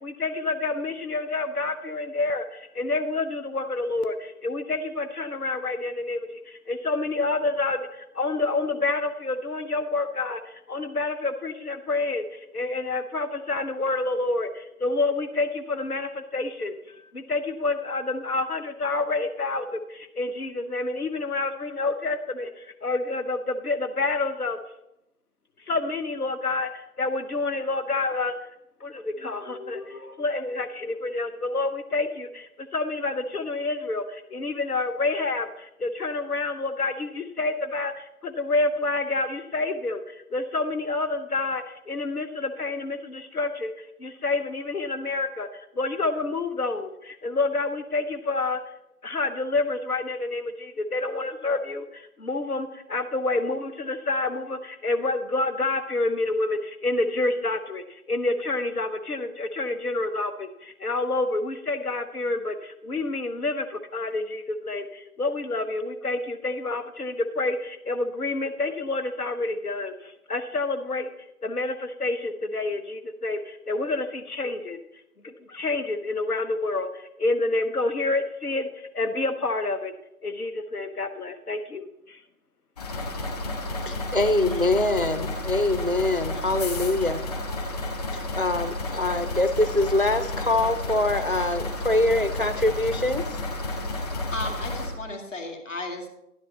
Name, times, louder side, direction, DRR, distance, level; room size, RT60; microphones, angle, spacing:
voice 1, 0.0-24.6 25.7-28.3 28.8-48.6 49.0-71.1 71.4-74.8 75.2-78.7 78.9-79.9 80.2-82.2, left 3 dB, 75° left, 8 dB, 1.0 m, -28 dB
sound 1, 82.8-94.9, left 1 dB, 25° left, 1.8 m, -31 dB
voice 2, 83.9-87.2 88.1-93.2, left 2 dB, 40° right, 11 dB, 0.4 m, -24 dB
voice 3, 94.3-96.1, left 2 dB, 55° left, 3 dB, 2.2 m, -34 dB
11.5 x 11.0 x 4.0 m, 0.85 s
figure-of-eight pair, 160°, 45 cm